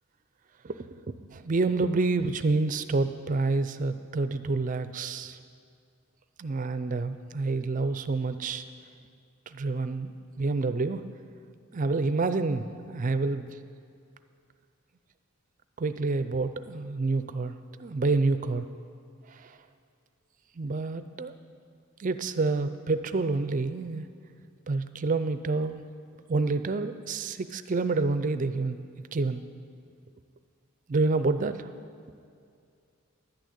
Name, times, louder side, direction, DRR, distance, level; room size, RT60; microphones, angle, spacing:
voice 1, 1.1-5.4 6.4-8.6 9.5-11.0 11.7-13.5 15.8-17.5 17.8-18.6 19.3-19.5 20.6-21.3 22.0-24.1 24.7-25.8 26.3-28.8 29.1-29.4 30.9-31.7, right 3 dB, 35° right, 11 dB, 0.4 m, -28 dB
11.5 x 6.4 x 8.5 m, 2.4 s
head